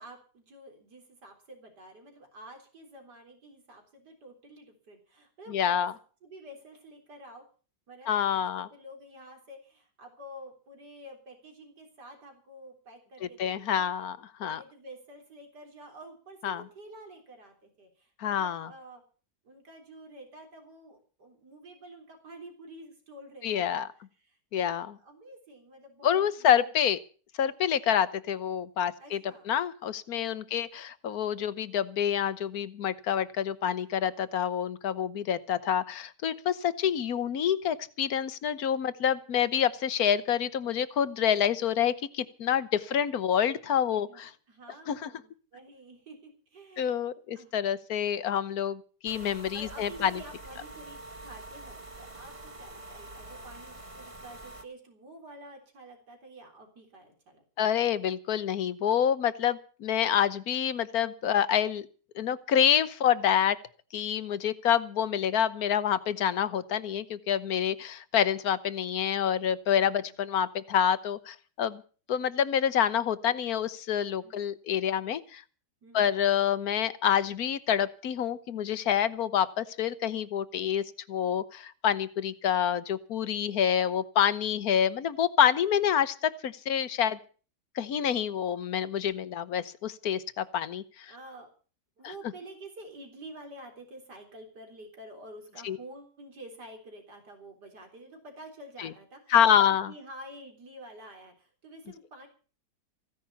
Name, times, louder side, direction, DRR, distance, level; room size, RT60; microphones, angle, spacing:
voice 1, 0.0-5.9 6.2-7.4 7.9-13.9 14.4-19.0 19.4-23.9 24.2-26.7 29.0-29.5 30.3-30.6 43.9-47.0 47.3-47.5 49.5-57.4 69.8-70.2 74.2-74.5 75.8-76.1 91.1-91.5 92.0-99.3 99.7-102.3, right 1 dB, 75° right, 3 dB, 4.2 m, -49 dB
voice 2, 5.5-5.9 8.1-8.7 13.4-14.6 16.4-16.6 18.2-18.7 23.4-23.9 24.5-24.9 26.0-27.0 27.4-29.2 29.5-44.3 44.9-45.1 46.8-50.2 57.6-61.9 62.1-63.6 63.9-71.8 72.1-75.4 75.9-87.2 87.7-91.1 95.6-95.8 98.8-98.9 99.3-99.9, left 9 dB, 65° left, 15 dB, 1.4 m, -27 dB
sound 1, 49.1-54.7, right 2 dB, 20° right, 1.2 m, -46 dB
15.5 x 10.5 x 7.1 m, 0.39 s
omnidirectional pair, 1.8 m